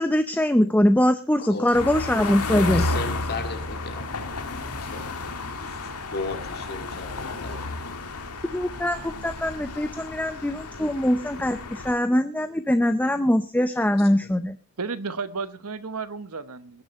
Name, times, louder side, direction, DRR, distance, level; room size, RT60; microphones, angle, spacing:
voice 1, 0.0-2.8 8.4-14.6, left 1 dB, 5° left, 10 dB, 0.6 m, -22 dB
sound 1, 1.7-11.9, left 2 dB, 80° left, 1.7 m, -32 dB
voice 2, 2.2-4.5 4.7-7.8 14.0-14.3, left 3 dB, 45° left, 7 dB, 2.1 m, -36 dB
voice 3, 14.8-16.8, right 4 dB, 75° right, 13 dB, 1.1 m, -33 dB
19.5 x 10.5 x 4.1 m, 0.34 s
head